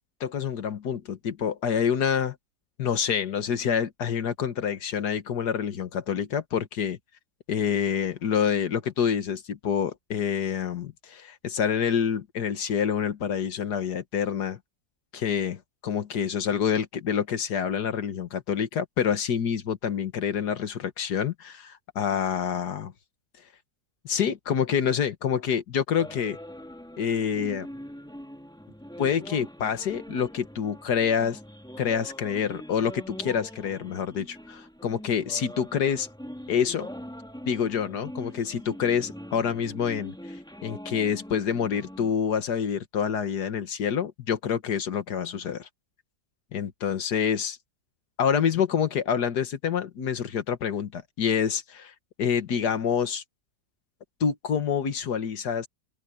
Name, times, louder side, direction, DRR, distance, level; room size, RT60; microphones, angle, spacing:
voice 1, 0.2-2.4 2.8-7.0 7.5-14.6 15.1-22.9 24.1-26.4 27.0-27.7 29.0-31.4 31.8-36.1 36.5-36.9 37.5-40.4 40.6-45.7 46.5-47.6 48.2-51.9 52.2-53.2 54.2-55.7, left 7 dB, 80° left, 1.9 m, -27 dB
sound 1, 26.0-42.1, equal, 5° left, 2.5 m, -42 dB
open air
omnidirectional pair, 1.7 m